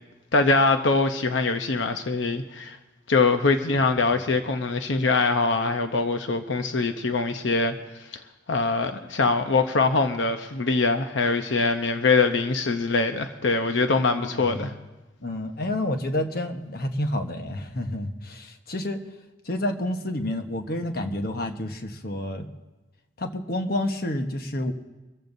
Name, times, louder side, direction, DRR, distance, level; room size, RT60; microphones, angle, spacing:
voice 1, 0.3-2.8 3.1-7.8 8.5-14.7, left 3 dB, 85° left, 7 dB, 0.8 m, -23 dB
voice 2, 14.1-14.8 15.2-19.0 19.4-22.5 23.2-24.7, left 1 dB, 55° left, 5 dB, 1.2 m, -29 dB
24.5 x 14.5 x 2.7 m, 1.1 s
head